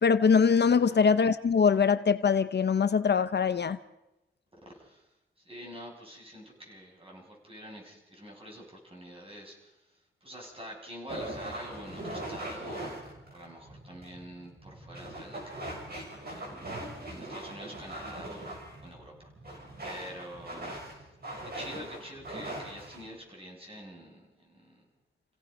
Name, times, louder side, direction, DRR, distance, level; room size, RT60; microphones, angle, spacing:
voice 1, 0.0-3.8, left 6 dB, 55° left, 12 dB, 0.7 m, -23 dB
voice 2, 4.6-5.1 5.4-15.7 16.3-18.5 18.8-19.3 19.8-24.8, equal, 25° right, -2 dB, 6.8 m, -47 dB
sound 1, 11.1-23.1, right 1 dB, 50° right, 6.9 m, -41 dB
29.5 x 16.5 x 5.3 m, 0.95 s
wide cardioid pair, 105°, 21 cm